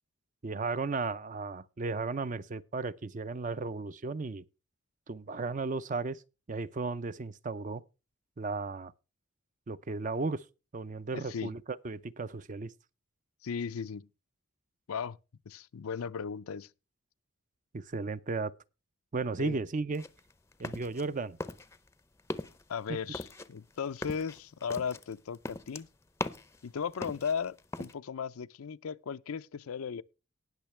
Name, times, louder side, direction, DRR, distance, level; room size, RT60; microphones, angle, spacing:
voice 1, 0.4-4.4 5.1-6.2 6.5-7.8 8.4-8.9 9.7-10.4 10.7-12.7 17.7-18.5 19.1-20.0 20.6-21.4, right 3 dB, 35° right, 0.5 m, -35 dB
voice 2, 11.1-11.6 13.4-14.1 14.9-15.2 15.5-16.7 19.4-19.6 22.7-25.9 26.6-30.0, left 6 dB, 90° left, 0.5 m, -36 dB
sound 1, 19.9-21.1 21.4-21.9 22.2-22.6 23.1-26.6 26.9-27.9, left 2 dB, 15° left, 0.5 m, -39 dB
18.5 x 6.6 x 3.2 m
head